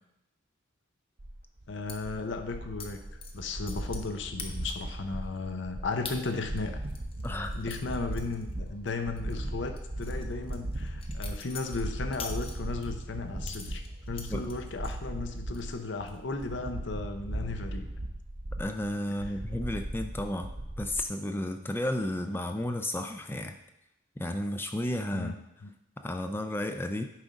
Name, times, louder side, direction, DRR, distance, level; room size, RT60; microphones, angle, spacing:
sound 1, 1.2-21.0, right 1 dB, 40° right, 0.7 m, -38 dB
voice 1, 1.7-3.0 3.3-6.8 7.5-17.9 25.1-25.7, left 3 dB, 60° left, 6 dB, 0.7 m, -35 dB
sound 2, 1.9-2.0 2.8-2.9 3.2-4.1 4.4-4.9 5.4-5.5 6.1-6.2 6.6-8.9 9.2-9.3 9.8-12.9 13.4-15.0 15.4-15.8 16.1-16.5, left 5 dB, 30° left, 0.8 m, -44 dB
voice 2, 7.2-7.5 14.3-14.5 18.6-20.5 20.8-23.6 24.2-25.3 26.0-27.0, left 1 dB, 10° left, 7 dB, 0.4 m, -32 dB
9.6 x 3.7 x 5.1 m, 0.86 s
head